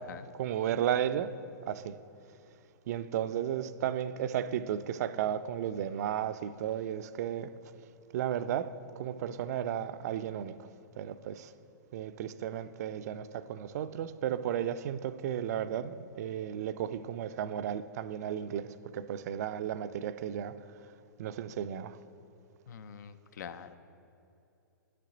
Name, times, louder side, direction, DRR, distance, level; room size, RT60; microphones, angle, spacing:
voice 1, 0.3-1.4 1.6-2.0 2.9-7.5 8.1-10.7 10.9-11.5 11.9-20.6 21.2-22.0, right 10 dB, 55° right, 0.4 m, -34 dB
voice 2, 22.7-23.7, left 7 dB, 65° left, 0.5 m, -45 dB
9.4 x 6.7 x 3.9 m
hypercardioid pair, 130°, 10 cm